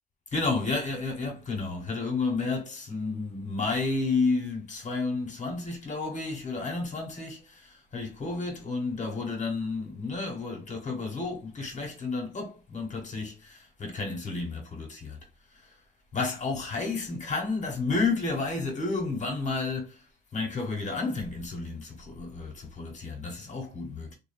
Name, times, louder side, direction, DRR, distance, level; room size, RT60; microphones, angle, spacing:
voice 1, 0.3-15.2 15.5-15.7 16.1-20.0 20.3-24.2, left 3 dB, 35° left, 1.0 m, -31 dB
2.6 x 2.0 x 2.5 m
cardioid pair, 90°, 20 cm